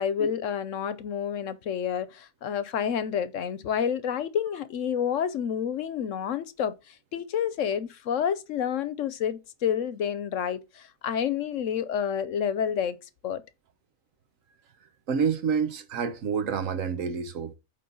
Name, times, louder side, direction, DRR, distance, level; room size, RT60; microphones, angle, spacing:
voice 1, 0.0-13.0 13.2-13.4, left 8 dB, 70° left, 1.1 m, -29 dB
voice 2, 14.8-17.6, right 6 dB, 70° right, 1.4 m, -28 dB
8.6 x 3.7 x 5.4 m
omnidirectional pair, 1.4 m